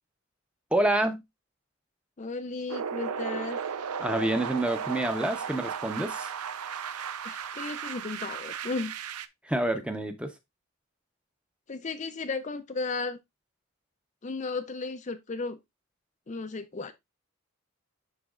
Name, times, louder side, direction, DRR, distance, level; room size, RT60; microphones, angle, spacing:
voice 1, 0.7-1.2 4.0-6.3 9.4-10.3, right 1 dB, 5° right, 0.7 m, -27 dB
voice 2, 2.2-3.6 7.2-8.9 11.7-13.2 14.2-15.6 16.3-16.9, left 3 dB, 30° left, 0.4 m, -34 dB
sound 1, 2.7-9.3, right 7 dB, 85° right, 0.6 m, -35 dB
11.5 x 4.0 x 2.4 m
head